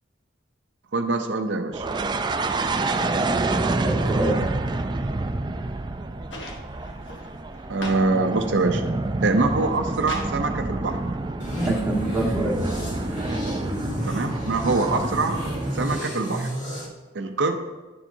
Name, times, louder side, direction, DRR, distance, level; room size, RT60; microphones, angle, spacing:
voice 1, 0.9-1.9 7.7-8.8 9.2-11.0 14.0-15.4 15.7-16.5 17.1-17.6, right 3 dB, 65° right, 5 dB, 0.6 m, -24 dB
sound 1, 1.7-16.0, right 2 dB, 25° right, 0.4 m, -28 dB
voice 2, 3.5-4.4 11.5-12.6, right 1 dB, 5° right, -5 dB, 1.5 m, -26 dB
sound 2, 6.3-8.1 8.4-9.0 9.5-10.4 11.6-11.7, left 2 dB, 75° left, 1.3 m, -38 dB
sound 3, 11.4-16.9, equal, 40° left, 2.0 m, -31 dB
10.5 x 7.2 x 2.7 m, 1.3 s
head